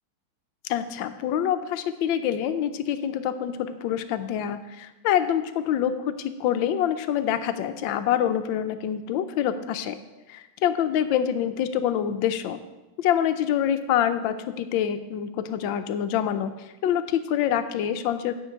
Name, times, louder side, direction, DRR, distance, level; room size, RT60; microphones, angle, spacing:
voice 1, 0.7-10.0 10.6-12.6 13.0-16.5 16.8-18.3, left 9 dB, 75° left, 10 dB, 1.3 m, -26 dB
10.0 x 4.6 x 7.8 m, 1.1 s
omnidirectional pair, 2.3 m